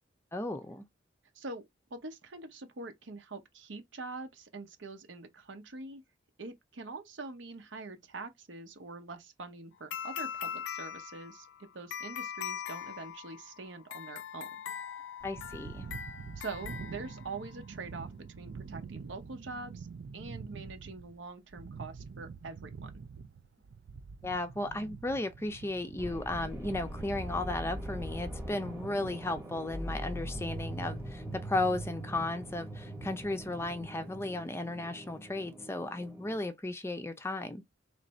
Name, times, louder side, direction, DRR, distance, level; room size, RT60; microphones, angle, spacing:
voice 1, 0.3-0.9 15.2-15.9 24.2-37.6, left 2 dB, 15° left, 0.5 m, -35 dB
voice 2, 1.3-1.7 1.9-6.0 6.4-11.5 11.7-14.5 16.4-18.1 18.4-19.9 20.1-22.9, right 3 dB, 80° right, 0.9 m, -44 dB
sound 1, 9.9-17.6, left 8 dB, 75° left, 0.4 m, -41 dB
sound 2, 15.2-33.9, right 5 dB, 65° right, 0.4 m, -47 dB
sound 3, 26.0-36.4, equal, 10° right, 1.0 m, -42 dB
3.2 x 2.6 x 4.1 m
head